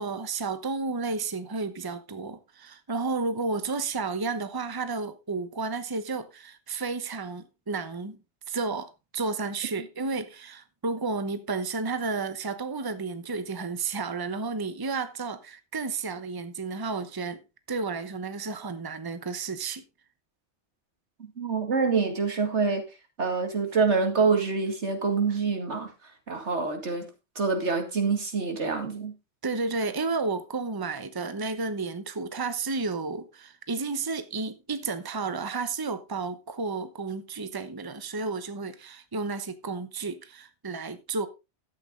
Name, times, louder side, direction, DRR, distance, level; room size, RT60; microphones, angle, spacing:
voice 1, 0.0-8.2 8.5-17.4 17.7-19.8 29.4-41.3, right 4 dB, 20° right, 0.9 m, -32 dB
voice 2, 21.4-22.8 23.2-25.9 26.3-27.1 27.4-29.1, right 4 dB, 85° right, 2.6 m, -26 dB
12.0 x 8.3 x 3.7 m
omnidirectional pair, 1.1 m